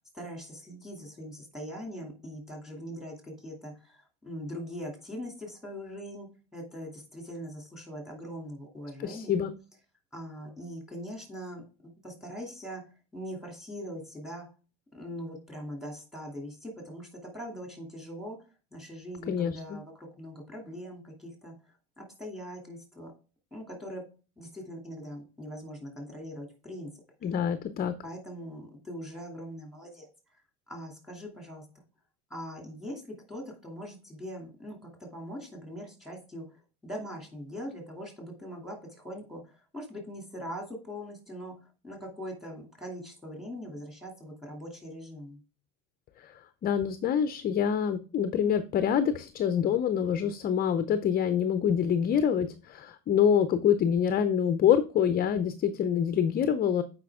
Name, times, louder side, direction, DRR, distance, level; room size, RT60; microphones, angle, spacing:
voice 1, 0.1-9.4 10.1-12.8 13.1-14.5 14.9-18.4 18.7-21.5 22.0-23.1 23.5-24.0 24.4-26.9 28.0-30.1 30.7-31.6 32.3-41.5 41.8-45.4, equal, ahead, 1 dB, 2.6 m, -41 dB
voice 2, 9.0-9.5 19.3-19.8 27.2-27.9 46.2-56.8, left 8 dB, 25° left, 11 dB, 0.5 m, -26 dB
8.4 x 5.1 x 3.5 m, 0.35 s
supercardioid pair, 135°, 34 cm